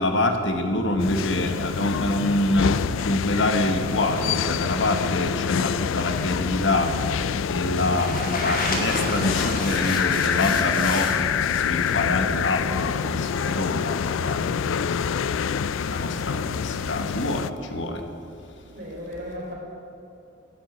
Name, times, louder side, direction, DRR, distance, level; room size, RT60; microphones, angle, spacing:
voice 1, 0.0-2.7 3.0-6.9 7.5-11.2 11.7-15.2 15.5-18.0, left 2 dB, 70° left, 5 dB, 1.4 m, -26 dB
sound 1, 1.0-17.5, left 7 dB, 90° left, 0.4 m, -26 dB
sound 2, 8.0-11.2 11.5-12.0, left 2 dB, 45° left, 2.1 m, -30 dB
voice 2, 18.7-19.5, equal, 45° right, -3 dB, 4.1 m, -35 dB
11.0 x 9.5 x 9.1 m, 2.7 s
head